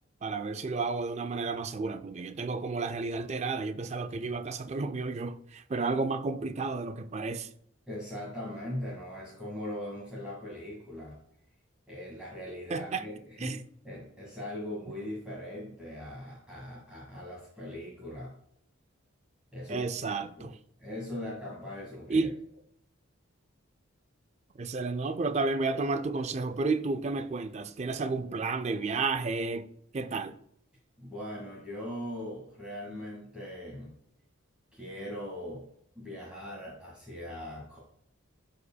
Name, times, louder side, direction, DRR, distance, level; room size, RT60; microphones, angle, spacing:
voice 1, 0.2-7.5 12.7-13.0 13.4-13.6 19.7-20.6 22.1-22.4 24.6-29.7 29.9-30.4, right 3 dB, 30° right, 0.4 m, -32 dB
voice 2, 7.9-11.2 11.9-18.3 19.5-20.5 20.8-22.3 31.0-33.9 34.7-35.7 36.0-37.8, left 1 dB, 5° right, 1.9 m, -40 dB
13.0 x 4.9 x 2.3 m
head